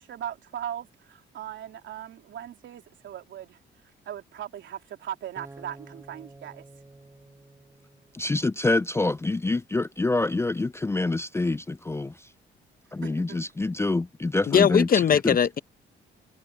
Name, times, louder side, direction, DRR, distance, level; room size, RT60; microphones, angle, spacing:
voice 1, 0.0-3.6 4.1-6.7 13.0-13.4, right 10 dB, 70° right, 3.5 m, -38 dB
Acoustic guitar, 5.4-8.6, right 2 dB, 15° right, 3.2 m, -50 dB
voice 2, 8.1-12.1 12.9-14.9 15.2-15.4, left 2 dB, 15° left, 0.4 m, -26 dB
voice 3, 14.5-15.6, left 8 dB, 45° left, 0.9 m, -20 dB
cardioid pair, 90°, 20 cm